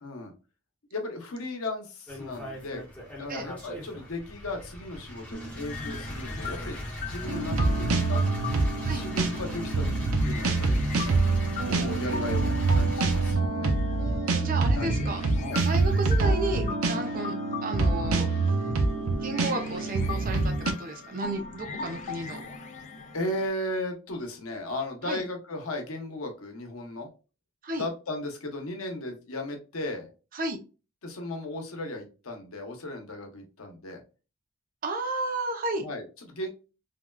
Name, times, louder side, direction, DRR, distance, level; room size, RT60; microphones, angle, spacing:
voice 1, 0.0-0.3 0.9-2.8 3.2-8.2 8.9-10.9 11.6-13.7 14.7-14.9 15.3-15.6 23.1-27.1 27.8-30.1 31.0-34.0 35.8-36.5, left 1 dB, 85° left, 3 dB, 0.9 m, -36 dB
sound 1, 2.1-13.3, equal, 5° left, 0.9 m, -38 dB
sound 2, 5.3-23.5, left 4 dB, 35° left, 0.4 m, -41 dB
sound 3, 7.2-20.7, right 3 dB, 85° right, 0.5 m, -26 dB
voice 2, 14.0-15.2 15.6-17.3 17.6-18.3 19.2-22.4 25.0-25.2 27.6-27.8 30.3-30.6 34.8-35.8, right 2 dB, 40° right, 5 dB, 0.6 m, -32 dB
3.5 x 2.2 x 2.2 m, 0.32 s
head